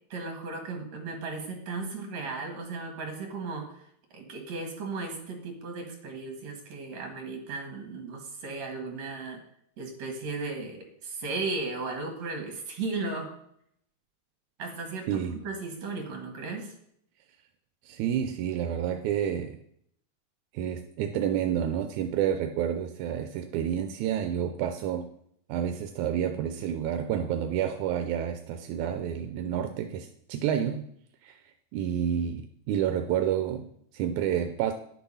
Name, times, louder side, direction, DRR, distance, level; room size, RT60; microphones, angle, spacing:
voice 1, 0.1-3.8 4.1-9.4 9.8-13.3 14.6-16.7, right 3 dB, 65° right, 3 dB, 3.1 m, -36 dB
voice 2, 15.1-15.4 17.8-19.6 20.5-25.1 25.5-30.8 31.2-31.4 31.7-34.7, right 9 dB, 90° right, 6 dB, 2.1 m, -29 dB
10.0 x 7.0 x 5.5 m, 0.71 s
omnidirectional pair, 3.3 m